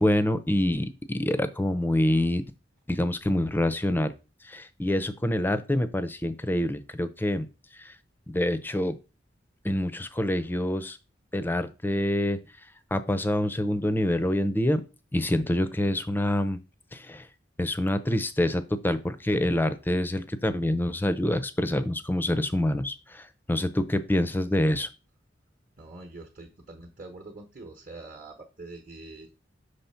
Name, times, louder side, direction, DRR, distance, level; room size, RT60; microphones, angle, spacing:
voice 1, 0.0-2.4 2.9-4.1 4.5-7.5 8.3-8.9 9.6-11.0 11.3-12.4 12.9-14.8 15.1-16.6 16.9-17.2 17.6-23.2 23.5-24.9, left 1 dB, 10° left, 11 dB, 0.5 m, -26 dB
voice 2, 25.8-29.3, right 2 dB, 45° right, 2 dB, 1.0 m, -44 dB
5.7 x 3.2 x 5.6 m, 0.30 s
head